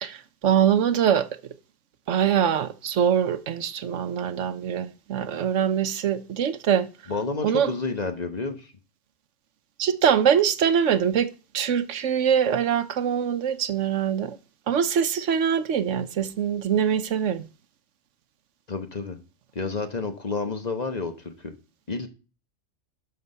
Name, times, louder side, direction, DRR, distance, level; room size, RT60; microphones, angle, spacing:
voice 1, 0.0-1.3 2.1-6.9 7.4-7.7 9.8-11.3 11.5-14.4 14.7-17.4, right 8 dB, 75° right, 1.1 m, -23 dB
voice 2, 7.1-8.7 18.7-19.2 19.5-21.5 21.9-22.1, left 3 dB, 35° left, 1.2 m, -30 dB
12.0 x 5.9 x 5.5 m
omnidirectional pair, 1.3 m